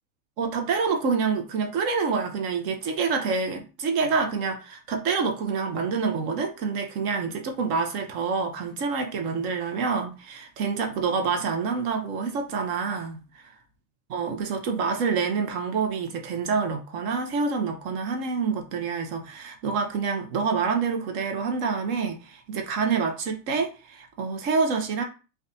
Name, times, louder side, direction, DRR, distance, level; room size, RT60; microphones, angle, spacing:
voice 1, 0.4-13.4 14.1-25.0, right 5 dB, 40° right, 5 dB, 0.5 m, -27 dB
2.4 x 2.2 x 2.7 m, 0.33 s
hypercardioid pair, 120°, 48 cm